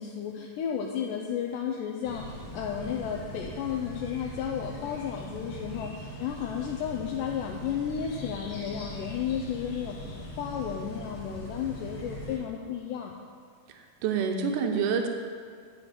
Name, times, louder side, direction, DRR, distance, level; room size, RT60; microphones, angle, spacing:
voice 1, 0.0-13.1, left 8 dB, 80° left, 1 dB, 2.0 m, -33 dB
sound 1, 2.0-12.4, equal, 55° left, 2.0 m, -41 dB
voice 2, 13.7-15.1, right 6 dB, 80° right, 4 dB, 2.0 m, -27 dB
9.0 x 6.2 x 5.0 m, 2.1 s
omnidirectional pair, 4.2 m